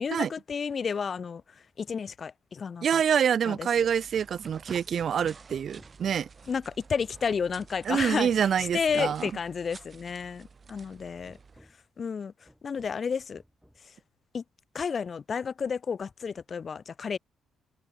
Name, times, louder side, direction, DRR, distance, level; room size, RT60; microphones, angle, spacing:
voice 1, 0.0-3.0 3.5-3.9 6.5-8.3 8.7-11.4 12.0-13.4 13.8-13.9 14.3-14.4 14.7-17.2, left 6 dB, 45° left, 0.9 m, -32 dB
voice 2, 2.8-6.3 7.9-9.3, right 8 dB, 55° right, 0.3 m, -26 dB
sound 1, 3.7-11.6, right 5 dB, 35° right, 2.0 m, -51 dB
Hammer, 4.1-6.4 7.0-7.9 8.3-9.2 10.2-10.3 10.7-10.8 11.2-11.9 12.5-13.1 13.3-14.0, equal, ahead, 3.8 m, -56 dB
cardioid pair, 90°, 0 cm